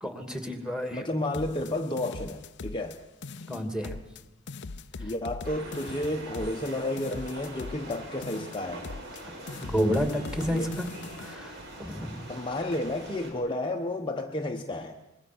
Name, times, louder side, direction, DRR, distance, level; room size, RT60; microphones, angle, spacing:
voice 1, 0.0-1.0 3.5-4.0 5.0-5.1 9.6-10.9 11.2-12.2, equal, 5° right, 5 dB, 2.7 m, -30 dB
voice 2, 0.9-3.0 5.0-8.9 10.5-10.7 12.3-15.0, left 1 dB, 25° left, 2 dB, 1.1 m, -31 dB
sound 1, 1.3-3.0 3.2-4.2 4.5-9.2 9.5-11.3, left 3 dB, 55° left, 0.7 m, -41 dB
sound 2, 5.4-13.3, right 1 dB, 55° right, 5.5 m, -43 dB
25.5 x 21.5 x 6.2 m, 0.99 s
head